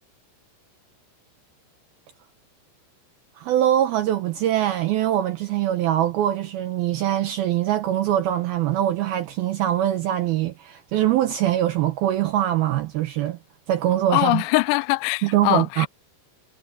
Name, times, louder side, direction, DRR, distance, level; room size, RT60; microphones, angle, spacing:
voice 1, 3.4-13.4 13.7-14.4 15.2-15.9, right 12 dB, 80° right, 2.3 m, -23 dB
voice 2, 14.1-15.9, left 22 dB, 80° left, 2.6 m, -22 dB
omnidirectional pair, 5.3 m